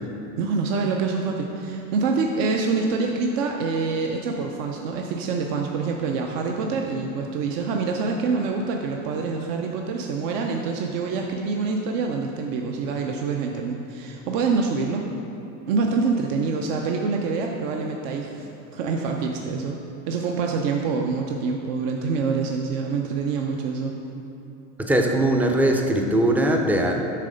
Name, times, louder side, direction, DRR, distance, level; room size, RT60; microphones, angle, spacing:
voice 1, 0.4-15.0 15.7-19.8 20.1-23.9, right 4 dB, 70° right, 2 dB, 0.6 m, -26 dB
voice 2, 24.8-26.9, right 1 dB, 5° right, 2 dB, 0.3 m, -20 dB
7.5 x 3.3 x 5.2 m, 2.9 s
supercardioid pair, 105°, 39 cm